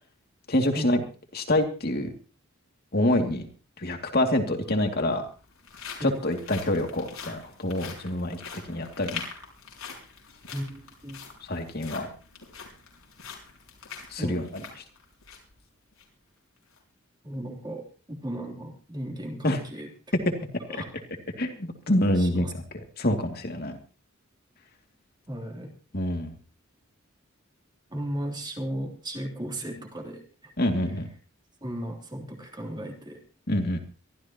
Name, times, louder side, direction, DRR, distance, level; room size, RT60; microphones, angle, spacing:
voice 1, 0.5-1.0 1.3-2.1 2.9-3.5 3.8-5.2 6.0-8.4 8.7-9.2 11.5-12.1 14.1-14.5 19.4-19.6 20.7-20.8 21.4-22.4 23.0-23.8 25.9-26.3 30.6-31.1 33.5-33.8, left 1 dB, 45° left, 4 dB, 2.5 m, -26 dB
sound 1, 4.0-4.1 5.0-15.5 15.9-16.0 16.6-16.8, left 6 dB, 90° left, 5.3 m, -44 dB
voice 2, 10.5-11.2 14.2-14.7 17.2-19.9 20.7-20.9 22.2-22.5 25.3-25.7 27.9-30.5 31.6-33.2, right 1 dB, 20° right, 2 dB, 3.2 m, -36 dB
24.0 x 14.0 x 3.0 m, 0.36 s
head